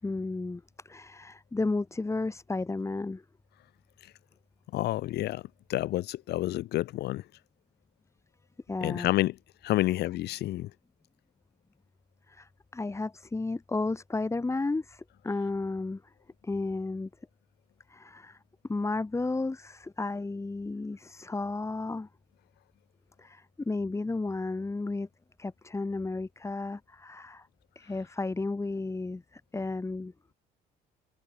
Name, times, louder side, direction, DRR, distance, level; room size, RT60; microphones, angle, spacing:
voice 1, 0.0-3.2 8.7-9.1 12.3-16.1 16.4-17.1 17.9-18.4 18.6-22.1 23.2-25.1 25.4-27.5 27.8-30.1, left 3 dB, 15° left, 7.1 m, -33 dB
voice 2, 4.7-5.4 5.7-7.2 8.8-9.3 9.6-10.7, left 15 dB, 75° left, 3.6 m, -29 dB
cardioid pair, 110°, 17 cm